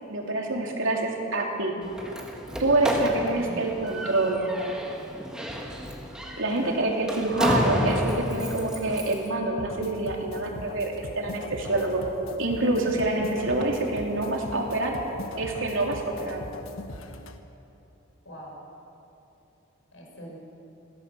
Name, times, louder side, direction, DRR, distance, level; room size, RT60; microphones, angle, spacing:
voice 1, 0.1-1.8 2.6-4.4 6.4-12.0 12.4-15.0 15.4-16.4, right 2 dB, 70° right, 0 dB, 3.3 m, -26 dB
Slam, 1.8-9.3, equal, 5° right, 1.9 m, -31 dB
voice 2, 3.3-3.8 6.5-6.9 18.3-18.6 19.9-20.4, equal, 70° left, -1 dB, 5.7 m, -42 dB
sound 1, 9.6-17.4, left 2 dB, 85° left, 1.4 m, -40 dB
22.5 x 17.5 x 7.1 m, 2.9 s
head